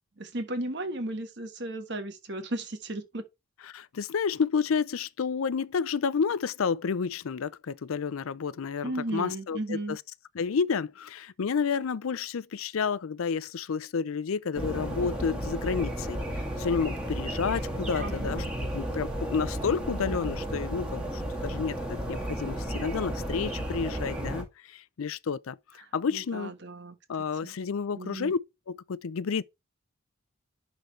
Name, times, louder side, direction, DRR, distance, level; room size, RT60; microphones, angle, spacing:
voice 1, 0.2-3.2 8.8-10.0 18.0-18.5 25.8-26.9 27.4-27.5 27.9-28.3, right 1 dB, 55° right, 1.4 m, -35 dB
voice 2, 3.7-10.0 10.3-18.5 18.7-25.6 25.9-26.5 27.1-28.4 28.7-29.4, left 5 dB, 80° left, 0.5 m, -30 dB
sound 1, 14.5-24.4, right 1 dB, 5° right, 2.2 m, -33 dB
11.0 x 3.9 x 3.1 m
head